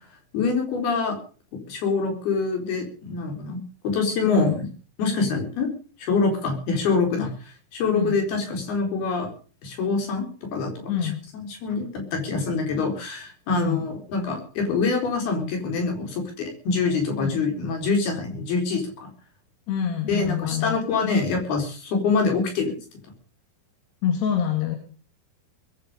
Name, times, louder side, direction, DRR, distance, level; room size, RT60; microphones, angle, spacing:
voice 1, 0.3-1.2 1.5-4.7 5.0-5.7 6.0-7.3 7.7-9.3 9.6-19.1 20.1-22.8, left 4 dB, 70° left, 3 dB, 6.1 m, -25 dB
voice 2, 10.9-11.2 13.5-13.9 17.2-17.4 19.7-20.8 21.0-21.2 24.0-24.8, left 9 dB, 85° left, 4 dB, 4.2 m, -26 dB
21.0 x 9.0 x 6.8 m, 0.41 s
omnidirectional pair, 4.7 m